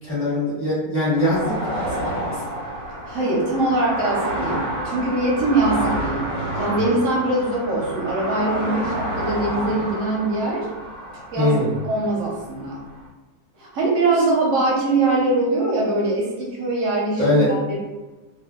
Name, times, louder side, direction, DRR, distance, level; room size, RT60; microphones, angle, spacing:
voice 1, 0.0-2.4 11.4-11.8 17.2-17.5, left 1 dB, 10° left, -11 dB, 1.2 m, -22 dB
sound 1, 1.2-13.1, right 1 dB, 85° left, 1.5 m, -29 dB
voice 2, 3.0-10.7 11.3-11.5 11.8-12.8 13.6-17.8, right 2 dB, 60° right, -4 dB, 0.9 m, -22 dB
2.8 x 2.6 x 2.3 m, 1.2 s
omnidirectional pair, 1.7 m